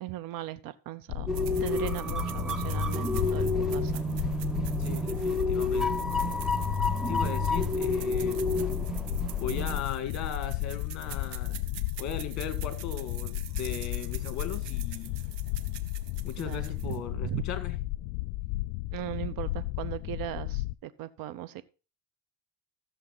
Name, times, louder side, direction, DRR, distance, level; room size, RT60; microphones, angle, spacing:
voice 1, 0.0-1.3 1.6-4.0 16.4-17.4 18.9-21.6, right 13 dB, 55° right, 0.9 m, -38 dB
sound 1, 1.1-20.7, left 18 dB, 75° left, 0.6 m, -34 dB
sound 2, 1.3-9.8, left 1 dB, ahead, 0.8 m, -30 dB
sound 3, 1.3-17.1, right 11 dB, 75° right, 1.3 m, -46 dB
voice 2, 4.8-6.1 7.1-8.4 9.4-11.6 12.0-15.2 16.2-17.7, left 8 dB, 40° left, 2.1 m, -38 dB
14.0 x 7.3 x 4.0 m
cardioid pair, 130°, 41 cm